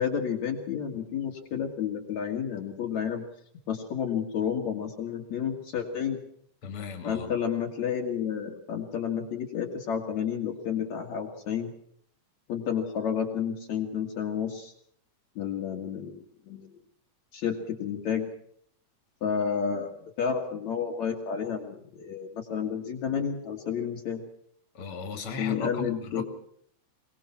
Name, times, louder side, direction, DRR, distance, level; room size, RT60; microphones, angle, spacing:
voice 1, 0.0-3.2 3.7-6.2 7.0-11.7 12.5-14.7 15.4-16.7 17.3-18.3 19.2-24.2 25.4-26.2, left 7 dB, 60° left, 0 dB, 3.1 m, -31 dB
voice 2, 6.6-7.3 24.7-26.2, left 4 dB, 45° left, 6 dB, 3.3 m, -36 dB
24.0 x 19.5 x 5.9 m, 0.66 s
omnidirectional pair, 3.7 m